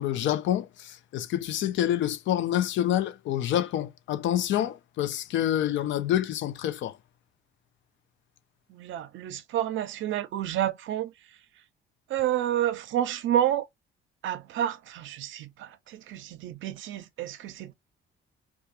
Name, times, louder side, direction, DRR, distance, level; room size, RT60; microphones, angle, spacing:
voice 1, 0.0-6.9, left 11 dB, 75° left, 0.4 m, -27 dB
voice 2, 8.7-11.1 12.1-13.7 14.2-17.7, right 11 dB, 75° right, 0.5 m, -29 dB
2.3 x 2.3 x 2.7 m
cardioid pair, 90°, 20 cm